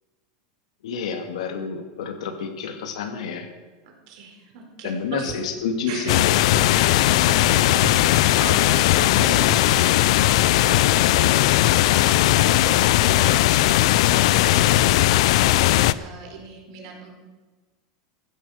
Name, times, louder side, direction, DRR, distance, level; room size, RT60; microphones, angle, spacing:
voice 1, 0.8-3.5 4.8-6.2, left 5 dB, 85° left, 5 dB, 2.3 m, -29 dB
voice 2, 4.1-5.3 5.9-6.0 6.7-12.8 13.1-17.1, right 4 dB, 60° right, 2 dB, 4.7 m, -38 dB
sound 1, 5.3-5.5 6.2-6.7 7.8-8.0 9.0-9.2 9.5-9.7 10.7-10.9, right 7 dB, 45° right, 3.1 m, -35 dB
sound 2, 6.1-15.9, left 15 dB, 65° left, 0.5 m, -18 dB
15.5 x 11.0 x 6.5 m, 1.3 s
supercardioid pair, 150°, 3 cm